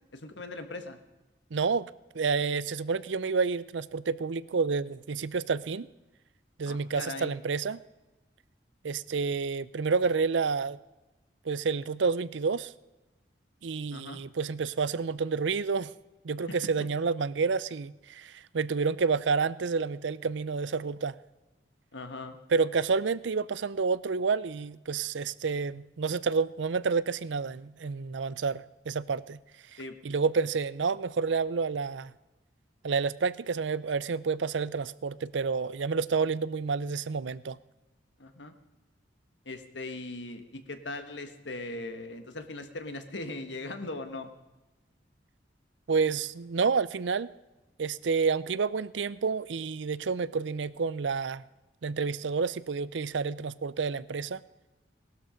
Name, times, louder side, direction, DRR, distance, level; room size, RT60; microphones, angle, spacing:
voice 1, 0.1-1.0 6.6-7.3 13.9-14.2 21.9-22.4 29.8-29.9 38.2-38.5 39.4-44.3, left 2 dB, 70° left, 8 dB, 1.6 m, -39 dB
voice 2, 1.5-1.9 2.1-5.9 6.6-7.8 8.8-10.8 11.4-12.7 13.6-15.9 16.2-21.1 22.5-29.4 29.7-29.8 30.0-32.1 32.8-37.6 45.9-47.3 47.8-51.4 51.8-54.4, right 5 dB, 75° right, 18 dB, 0.5 m, -29 dB
18.5 x 12.5 x 5.1 m, 1.1 s
head